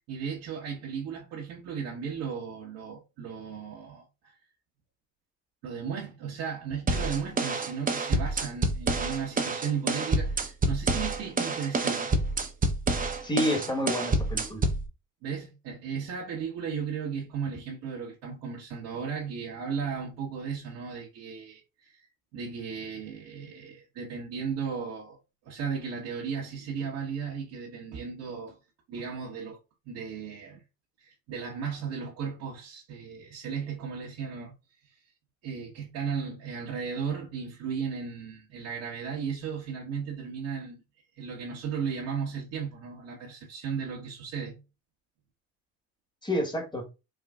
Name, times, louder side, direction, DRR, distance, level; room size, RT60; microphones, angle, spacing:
voice 1, 0.1-4.3 5.6-12.1 15.2-22.1 22.3-25.2 25.4-28.6 28.9-29.6 29.9-30.6 31.0-34.5 35.4-40.8 41.2-44.6, right 6 dB, 70° right, 1.3 m, -35 dB
sound 1, 6.9-14.9, right 2 dB, 25° right, 0.7 m, -28 dB
voice 2, 13.2-14.6 46.2-46.8, left 1 dB, 15° left, 1.3 m, -29 dB
4.7 x 2.4 x 2.3 m
supercardioid pair, 80°, 35 cm